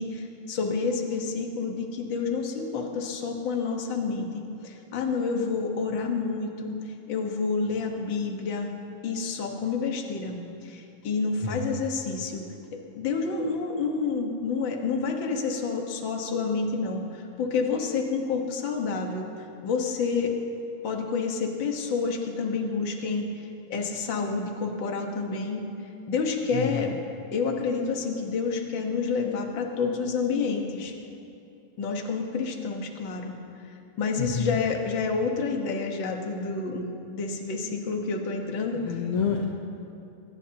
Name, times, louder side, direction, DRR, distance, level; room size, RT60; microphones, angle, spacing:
voice 1, 0.0-6.8 7.1-8.7 9.0-12.4 12.7-20.3 20.8-25.6 26.1-26.9 27.3-30.9 31.8-33.4 34.0-36.9 37.1-38.8, left 4 dB, 50° left, 2 dB, 1.5 m, -29 dB
voice 2, 26.5-27.0 34.2-34.6 38.7-39.5, left 6 dB, 75° left, 0 dB, 1.4 m, -29 dB
22.0 x 19.0 x 2.9 m, 2.8 s
omnidirectional pair, 3.9 m